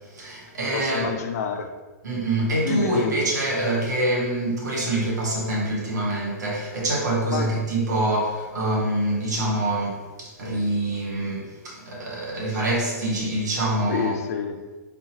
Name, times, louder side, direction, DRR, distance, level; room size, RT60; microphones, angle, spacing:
voice 1, 0.1-1.1 2.0-14.1, right 1 dB, 90° right, 1.1 m, -25 dB
voice 2, 0.7-1.7 2.6-3.3 7.3-7.5 12.5-12.6 13.9-14.6, left 7 dB, 65° left, 0.4 m, -28 dB
3.6 x 2.8 x 2.8 m
hypercardioid pair, 140°, 9 cm